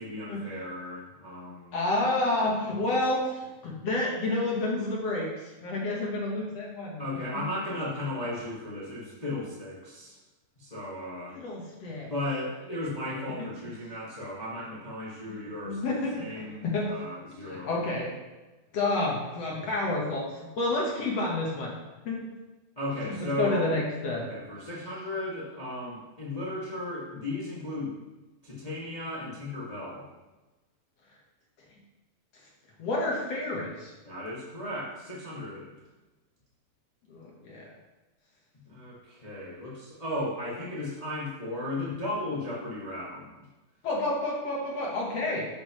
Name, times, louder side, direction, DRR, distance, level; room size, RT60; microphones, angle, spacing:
voice 1, 0.0-1.8 7.0-10.2 10.6-11.4 12.1-17.7 22.7-23.7 24.3-27.9 28.4-30.1 34.0-35.7 38.6-43.4, left 1 dB, 45° left, -7 dB, 0.4 m, -35 dB
voice 2, 1.7-7.0 7.3-7.4 11.3-12.1 13.4-13.5 15.3-15.4 15.6-16.9 17.4-18.1 18.7-21.8 22.0-22.3 23.0-24.3 32.8-33.9 37.1-37.7 43.8-45.5, left 2 dB, 65° left, -2 dB, 1.6 m, -30 dB
11.5 x 8.5 x 3.2 m, 1.1 s
omnidirectional pair, 4.7 m